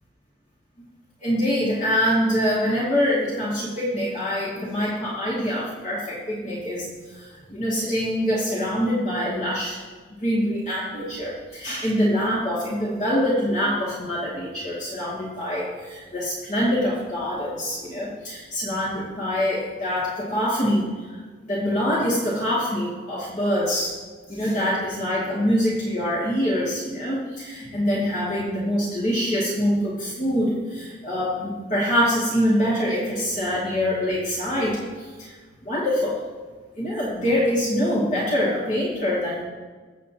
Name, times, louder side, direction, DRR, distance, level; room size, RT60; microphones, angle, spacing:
voice 1, 1.2-9.8 10.2-24.0 24.3-35.3 35.6-36.2 36.8-39.4, equal, 40° left, -7 dB, 2.5 m, -25 dB
22.5 x 8.3 x 3.0 m, 1.5 s
head